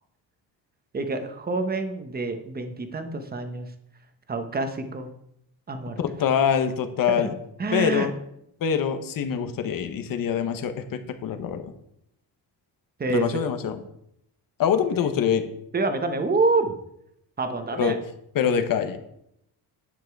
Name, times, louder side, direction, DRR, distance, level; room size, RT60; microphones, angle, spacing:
voice 1, 0.9-3.7 4.3-5.1 5.7-6.0 7.6-8.1 13.0-13.5 15.7-16.8 17.4-18.0, right 3 dB, 25° right, 7 dB, 1.1 m, -27 dB
voice 2, 6.0-7.3 7.7-8.1 8.6-11.7 13.1-13.8 14.6-15.4 17.8-17.9 18.3-19.0, left 8 dB, 55° left, 8 dB, 1.2 m, -24 dB
9.8 x 9.1 x 4.7 m, 0.76 s
cardioid pair, 165°, 39 cm